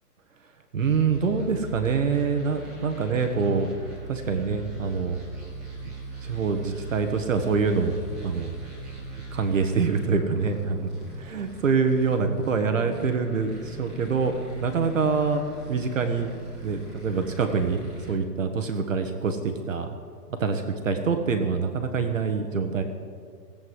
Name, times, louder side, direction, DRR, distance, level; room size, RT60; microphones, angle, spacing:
voice 1, 0.7-3.7 4.1-5.2 5.8-5.9 6.2-7.9 8.2-8.5 9.3-10.9 11.3-14.3 14.6-15.4 15.7-16.3 16.6-19.9 20.4-22.8, right 5 dB, 50° right, 6 dB, 1.2 m, -25 dB
sound 1, 0.8-18.1, right 2 dB, ahead, 1.0 m, -40 dB
17.5 x 8.1 x 7.6 m, 2.1 s
hypercardioid pair, 180°, 49 cm